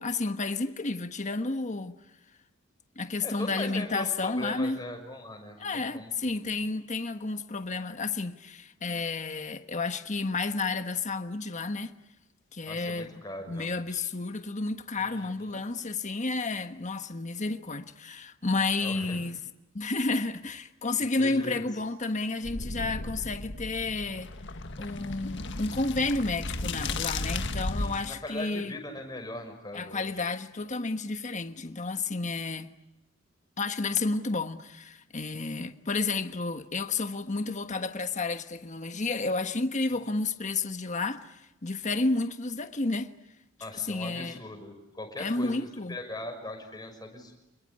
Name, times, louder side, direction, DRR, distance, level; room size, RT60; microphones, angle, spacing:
voice 1, 0.0-2.0 2.9-4.8 5.6-11.9 12.5-13.2 13.5-19.4 19.7-24.3 24.8-28.7 29.7-32.7 33.6-43.1 43.7-44.4 45.2-46.0, left 3 dB, 35° left, 1.3 m, -31 dB
voice 2, 3.2-6.1 6.5-6.6 12.7-14.1 15.0-15.6 18.8-19.1 21.2-21.6 27.8-30.2 39.9-40.0 43.6-45.5 45.9-47.3, left 1 dB, 20° left, 6.2 m, -40 dB
sound 1, 22.4-28.1, left 2 dB, 60° left, 1.7 m, -35 dB
28.0 x 21.5 x 9.8 m
head